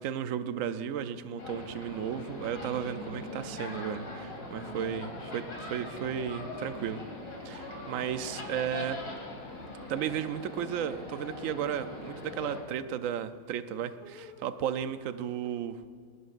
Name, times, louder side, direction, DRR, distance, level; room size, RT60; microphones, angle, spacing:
voice 1, 0.0-7.0 7.4-9.0 9.9-15.8, right 9 dB, 65° right, 10 dB, 0.8 m, -34 dB
sound 1, 0.6-15.5, equal, 25° left, 1.8 m, -50 dB
sound 2, 1.4-12.6, left 2 dB, 60° left, 3.3 m, -42 dB
20.5 x 20.0 x 2.6 m, 2.1 s
omnidirectional pair, 2.1 m